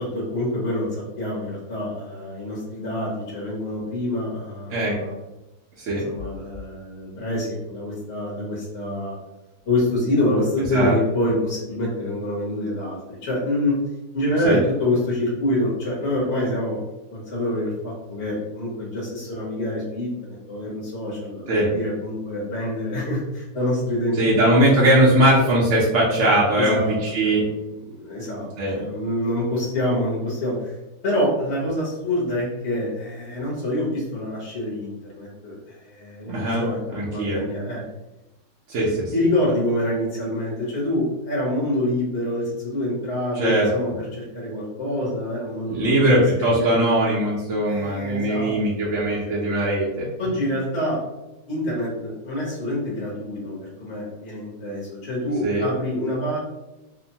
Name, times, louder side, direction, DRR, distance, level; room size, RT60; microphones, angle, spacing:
voice 1, 0.0-5.2 6.0-9.1 9.7-13.7 14.1-16.8 17.1-20.1 20.5-24.5 26.5-26.9 27.2-28.5 28.7-30.7 31.0-37.8 39.1-47.1 47.7-48.5 49.3-49.4 50.2-51.0 51.5-56.4, left 1 dB, 50° left, -6 dB, 0.9 m, -26 dB
voice 2, 24.2-27.4 28.6-28.8 36.3-36.6 36.9-37.4 38.7-39.1 43.3-43.7 45.7-50.1 55.4-55.7, right 1 dB, 65° right, -6 dB, 0.8 m, -20 dB
2.9 x 2.1 x 2.7 m, 1.0 s
omnidirectional pair, 1.8 m